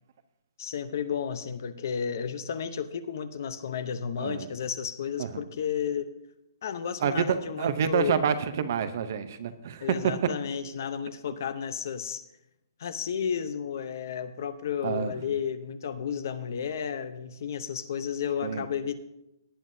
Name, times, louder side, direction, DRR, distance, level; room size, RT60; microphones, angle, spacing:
voice 1, 0.6-6.1 6.6-8.2 9.8-12.2 12.8-19.0, left 7 dB, 50° left, 13 dB, 0.7 m, -32 dB
voice 2, 7.0-9.9 14.8-15.1 18.4-18.7, right 7 dB, 40° right, 11 dB, 0.7 m, -28 dB
18.5 x 9.3 x 2.7 m, 0.86 s
hypercardioid pair, 170°, 2 cm